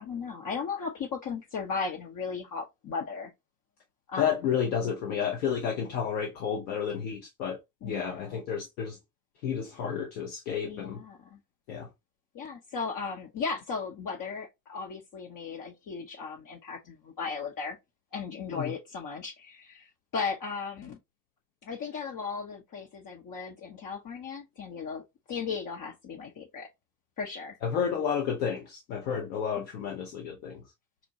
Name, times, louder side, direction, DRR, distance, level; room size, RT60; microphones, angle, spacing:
voice 1, 0.0-3.3 4.1-4.5 7.8-8.4 10.6-11.4 12.3-17.8 18.1-21.0 21.6-25.0 25.3-26.7 27.2-27.6 29.6-29.7, left 5 dB, 50° left, 0.8 m, -36 dB
voice 2, 4.2-7.6 7.8-9.0 9.4-11.0 11.7-11.9 18.5-18.7 27.6-30.6, left 7 dB, 85° left, 0.9 m, -31 dB
4.2 x 2.2 x 2.7 m
hypercardioid pair, 45°, 42 cm